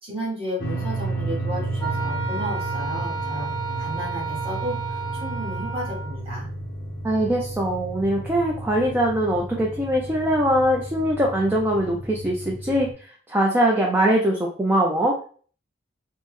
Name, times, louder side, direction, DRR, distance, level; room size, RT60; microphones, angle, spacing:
voice 1, 0.0-3.5 3.8-6.5, equal, 25° right, -6 dB, 1.4 m, -33 dB
sound 1, 0.6-12.9, right 2 dB, 50° left, 0.5 m, -32 dB
Wind instrument woodwind instrument, 1.8-6.2, right 5 dB, 20° left, 0.8 m, -32 dB
voice 2, 7.0-12.9 13.3-15.2, right 1 dB, 10° right, -2 dB, 0.3 m, -22 dB
3.5 x 2.0 x 3.1 m, 0.43 s
head